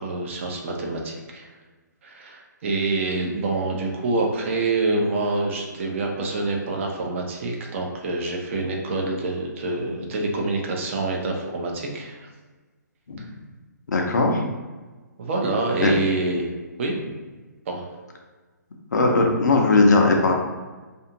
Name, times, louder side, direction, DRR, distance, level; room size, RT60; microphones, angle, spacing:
voice 1, 0.0-1.5 2.0-12.3 15.2-16.5 16.8-16.9 17.7-17.9, right 2 dB, 40° right, 0 dB, 0.6 m, -26 dB
voice 2, 13.9-14.4 15.8-15.9 18.9-20.3, left 3 dB, 65° left, 1 dB, 0.6 m, -18 dB
2.5 x 2.4 x 2.8 m, 1.3 s
figure-of-eight pair, 135°, 10 cm